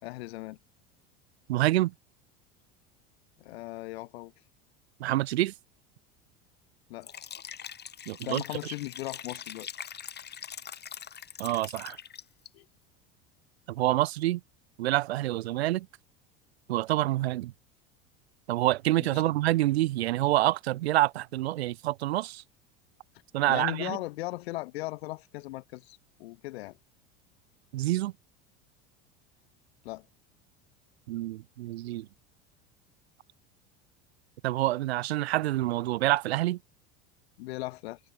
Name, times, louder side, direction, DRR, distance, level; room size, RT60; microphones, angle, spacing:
voice 1, 0.0-0.6 3.4-4.3 6.9-7.1 8.2-9.7 12.5-12.6 19.0-19.3 23.5-26.8 29.8-30.1 37.4-38.0, left 19 dB, 80° left, 3.7 m, -38 dB
voice 2, 1.5-1.9 5.0-5.5 8.1-8.4 11.4-12.0 13.7-14.4 14.8-15.9 16.7-17.5 18.5-22.4 23.3-24.0 27.7-28.1 31.1-32.1 34.4-36.6, right 16 dB, 90° right, 1.9 m, -27 dB
Liquid, 7.0-12.5, left 8 dB, 35° left, 3.1 m, -43 dB
supercardioid pair, 100°, 31 cm